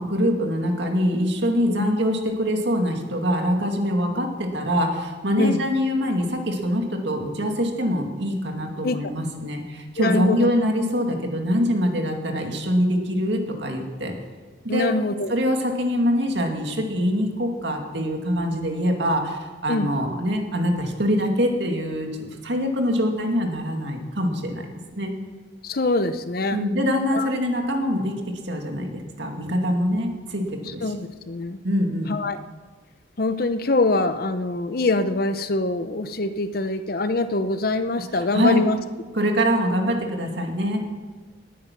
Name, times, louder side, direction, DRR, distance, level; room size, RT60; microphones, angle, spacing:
voice 1, 0.0-14.2 14.6-14.9 15.3-24.6 25.0-25.1 26.5-31.0 31.6-32.2 38.1-38.6 39.1-40.9, equal, 65° right, 2 dB, 2.3 m, -24 dB
voice 2, 10.0-10.5 14.7-15.3 19.7-19.9 25.6-26.6 27.1-27.3 30.8-31.6 32.1-32.4 33.2-38.8, left 2 dB, 50° left, 11 dB, 0.7 m, -24 dB
19.0 x 9.5 x 6.1 m, 1.4 s
head